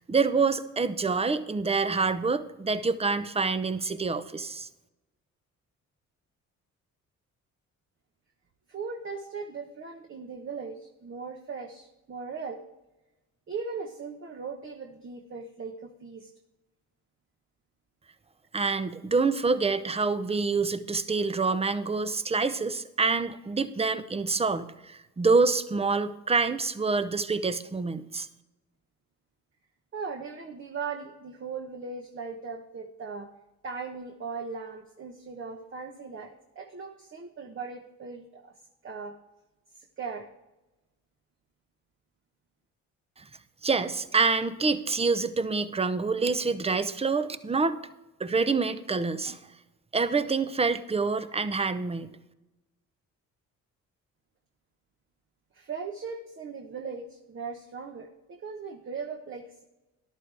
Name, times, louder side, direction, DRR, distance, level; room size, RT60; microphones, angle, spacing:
voice 1, 0.0-4.7 18.5-28.3 43.2-43.3 43.6-47.8 48.2-49.4 49.9-52.1, right 4 dB, 20° right, 12 dB, 0.7 m, -26 dB
voice 2, 8.7-12.6 13.5-16.3 29.9-33.3 33.6-38.5 38.8-39.1 39.7-40.3 55.5-59.6, right 5 dB, 40° right, 2 dB, 1.2 m, -38 dB
13.5 x 11.5 x 3.4 m, 1.0 s
cardioid pair, 90°, 30 cm